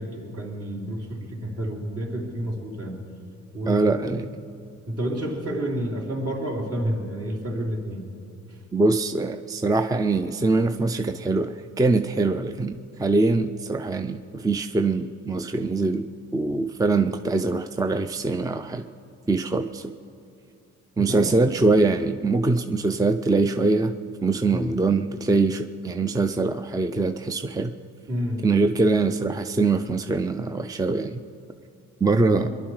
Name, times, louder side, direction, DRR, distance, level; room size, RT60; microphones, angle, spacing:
voice 1, 0.0-3.0 3.5-4.1 4.9-8.1 8.5-8.6 21.1-21.5 24.5-24.7 28.1-28.4 32.3-32.5, equal, 50° right, -1 dB, 3.6 m, -30 dB
voice 2, 3.7-4.3 8.7-18.9 19.3-19.9 21.0-23.9 24.2-27.7 28.4-31.2 32.0-32.5, right 3 dB, 10° right, 8 dB, 0.5 m, -23 dB
23.0 x 11.5 x 4.8 m, 2.5 s
cardioid pair, 90°, 30 cm